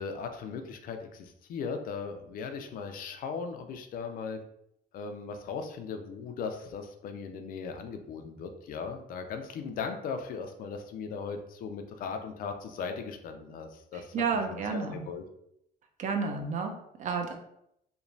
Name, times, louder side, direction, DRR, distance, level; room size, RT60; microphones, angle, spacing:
voice 1, 0.0-4.4 4.9-15.2, left 5 dB, 60° left, 6 dB, 0.4 m, -38 dB
voice 2, 13.9-14.9 16.0-17.4, right 5 dB, 45° right, 4 dB, 0.5 m, -31 dB
3.0 x 2.1 x 2.6 m, 0.76 s
cardioid pair, 110°, 17 cm